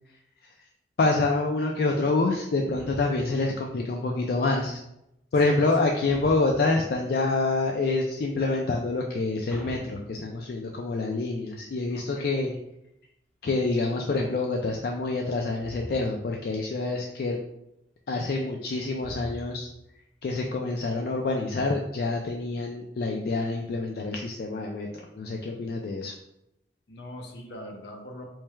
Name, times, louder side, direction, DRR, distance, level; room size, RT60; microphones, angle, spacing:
voice 1, 1.0-4.8 5.3-12.6 13.4-17.4 18.1-19.7 20.2-26.1, left 3 dB, 60° left, 1 dB, 0.3 m, -27 dB
sound 1, 2.8-3.5 6.1-6.9 9.5-10.7 15.6-16.3 19.0-19.8, equal, 5° left, 0.8 m, -42 dB
voice 2, 11.9-12.4 26.9-28.3, left 1 dB, 75° left, 2 dB, 0.7 m, -42 dB
4.5 x 3.1 x 2.2 m, 0.84 s
head